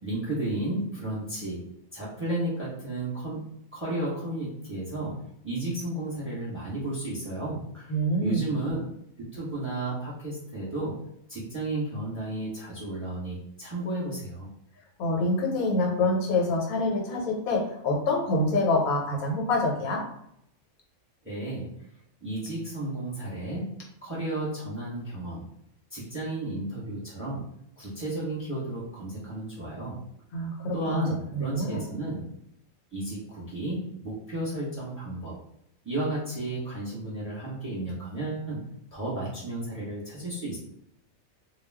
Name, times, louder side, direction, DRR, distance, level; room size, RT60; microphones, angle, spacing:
voice 1, 0.0-1.6 1.9-7.9 8.2-8.8 9.3-11.0 11.3-14.5 21.2-21.7 22.2-23.7 24.0-25.5 25.9-27.5 27.8-30.0 30.7-32.2 32.9-35.3 35.8-38.7 38.9-40.6, right 2 dB, 10° right, -7 dB, 1.0 m, -33 dB
voice 2, 7.9-8.5 15.0-20.0 30.3-31.0 31.3-31.8, left 2 dB, 85° left, -1 dB, 1.2 m, -26 dB
2.4 x 2.3 x 3.4 m, 0.76 s
omnidirectional pair, 1.5 m